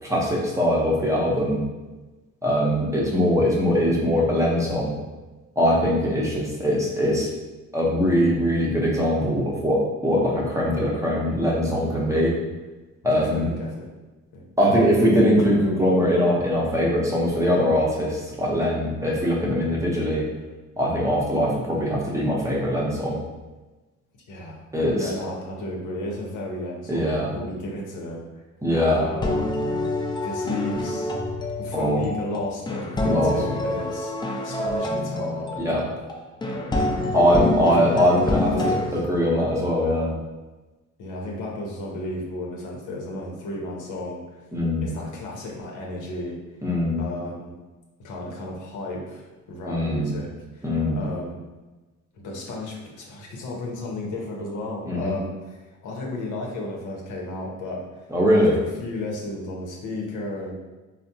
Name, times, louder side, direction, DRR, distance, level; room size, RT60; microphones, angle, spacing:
voice 1, 0.0-1.6 2.4-5.0 5.6-7.3 7.7-12.4 13.0-13.5 14.6-20.3 20.8-23.2 24.7-25.1 26.9-27.3 28.6-29.0 31.7-32.0 33.0-33.3 35.6-35.8 37.1-40.1 44.5-44.9 46.6-47.0 49.7-50.1 50.6-51.0 54.9-55.1 58.1-58.6, equal, 10° right, -4 dB, 0.7 m, -22 dB
voice 2, 13.1-13.9 14.3-14.4 24.3-24.6 24.9-28.2 28.9-29.3 30.2-31.1 31.6-35.9 36.5-36.9 37.8-37.9 38.2-38.9 41.0-44.4 44.8-46.4 47.0-47.5 48.0-50.3 50.5-50.6 50.9-51.4 52.1-55.3 55.8-58.0 58.3-60.5, left 2 dB, 85° left, -2 dB, 0.7 m, -33 dB
sound 1, 28.7-38.9, left 2 dB, 15° left, 0.3 m, -27 dB
3.3 x 2.0 x 2.7 m, 1.2 s
cardioid pair, 90°, 30 cm